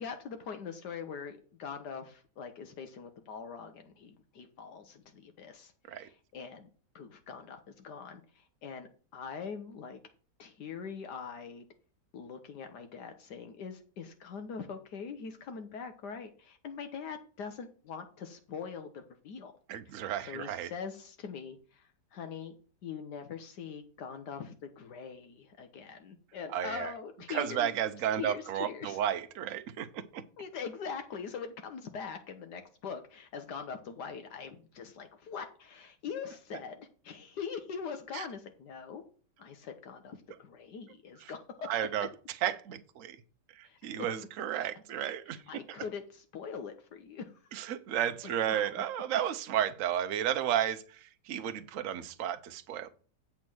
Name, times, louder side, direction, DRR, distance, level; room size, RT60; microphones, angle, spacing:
voice 1, 0.0-6.7 6.9-10.0 10.4-11.7 12.1-19.5 19.9-22.6 22.8-27.8 28.1-29.1 30.4-39.0 39.4-41.7 43.6-43.8 45.3-47.3 48.2-48.8, left 6 dB, 70° left, 1.4 m, -43 dB
voice 2, 19.7-20.7 26.5-26.9 27.3-30.2 38.1-38.2 41.7-42.1 42.4-43.2 43.8-45.4 47.5-50.8 51.3-52.9, right 10 dB, 60° right, 1.0 m, -32 dB
8.4 x 4.3 x 6.1 m
omnidirectional pair, 1.9 m